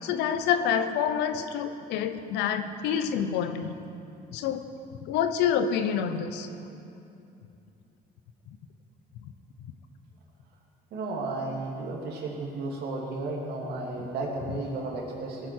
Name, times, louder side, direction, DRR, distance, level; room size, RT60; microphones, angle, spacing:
voice 1, 0.0-3.8 4.3-4.6 5.0-6.5, left 8 dB, 90° left, 9 dB, 0.8 m, -27 dB
voice 2, 10.9-15.5, right 2 dB, 70° right, -2 dB, 2.6 m, -33 dB
18.0 x 10.0 x 4.6 m, 2.7 s
cardioid pair, 110°, 17 cm